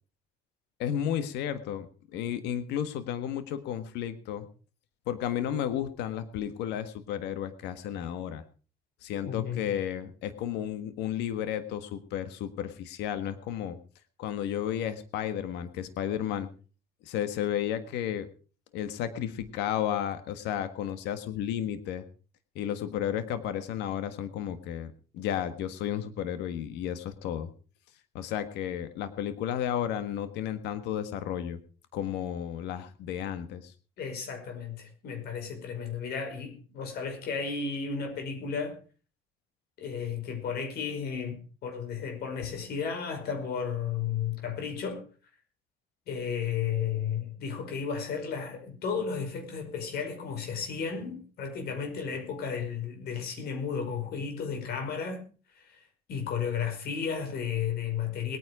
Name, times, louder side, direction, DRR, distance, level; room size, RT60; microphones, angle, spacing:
voice 1, 0.8-4.5 5.1-8.4 9.0-13.8 14.2-16.5 17.0-18.3 18.7-22.0 22.5-27.5 28.1-31.6 31.9-33.7, left 10 dB, 90° left, 1.6 m, -33 dB
voice 2, 9.2-9.6 34.0-38.8 39.8-45.0 46.1-55.3 55.5-55.8 56.1-58.4, left 6 dB, 70° left, 5.4 m, -33 dB
20.5 x 9.7 x 5.0 m
cardioid pair, 110°, 17 cm